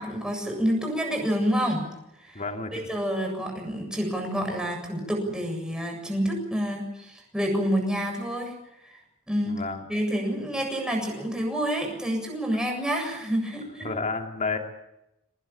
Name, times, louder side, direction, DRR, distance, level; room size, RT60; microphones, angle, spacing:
voice 1, 0.0-1.9 2.2-2.4 2.7-8.5 8.8-9.0 9.3-9.6 9.9-13.9, equal, 5° right, 1 dB, 7.6 m, -28 dB
voice 2, 2.3-2.9 9.5-9.8 13.8-14.6, left 4 dB, 35° left, 3 dB, 2.9 m, -30 dB
24.5 x 20.0 x 8.7 m, 0.89 s
head